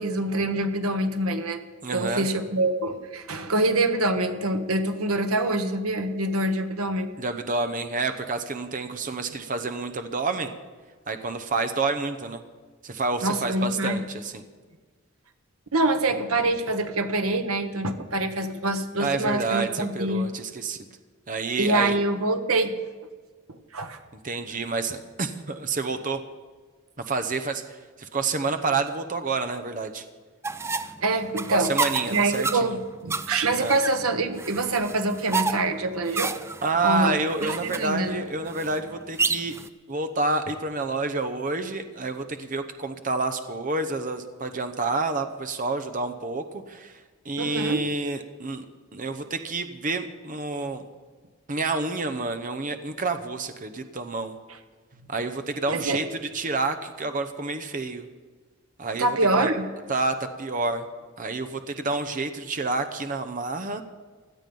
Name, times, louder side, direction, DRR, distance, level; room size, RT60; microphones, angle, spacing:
voice 1, 0.0-1.6 1.9-7.1 13.2-14.0 15.7-20.3 21.6-22.7 23.7-24.0 31.0-31.7 32.1-36.3 36.8-37.1 37.4-38.2 47.4-47.9 55.7-56.0 59.0-59.7, right 2 dB, 85° right, 7 dB, 1.3 m, -25 dB
voice 2, 1.8-2.3 7.2-10.5 11.1-12.4 12.8-14.4 19.0-20.8 21.3-22.0 24.2-26.2 27.1-30.0 31.5-32.8 33.6-33.8 36.6-39.5 39.9-48.6 48.9-50.8 51.5-54.3 55.1-58.1 58.8-59.5 59.9-60.8 61.2-63.8, right 3 dB, 40° right, 9 dB, 0.8 m, -29 dB
sound 1, 30.4-39.7, right 4 dB, 10° right, 0.4 m, -31 dB
17.0 x 12.0 x 5.4 m, 1.4 s
head